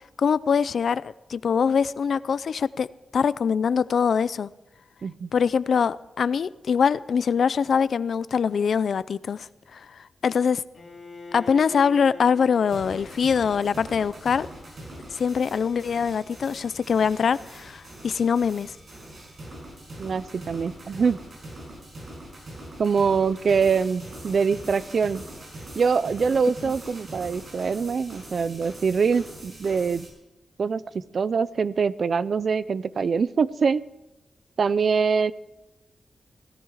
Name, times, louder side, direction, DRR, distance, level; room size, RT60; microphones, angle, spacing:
voice 1, 0.2-2.9 3.1-4.5 5.3-10.6 11.3-14.5 15.1-18.7 26.6-26.7, left 6 dB, 70° left, 0.4 m, -23 dB
Bowed string instrument, 10.7-16.7, left 3 dB, 45° left, 2.6 m, -46 dB
sound 1, 12.7-30.1, right 1 dB, 40° right, 6.8 m, -43 dB
voice 2, 20.0-21.2 22.8-25.2 25.8-30.1 30.6-33.8 34.6-35.3, right 5 dB, 55° right, 0.5 m, -24 dB
17.0 x 14.0 x 4.8 m
wide cardioid pair, 145°, 0 cm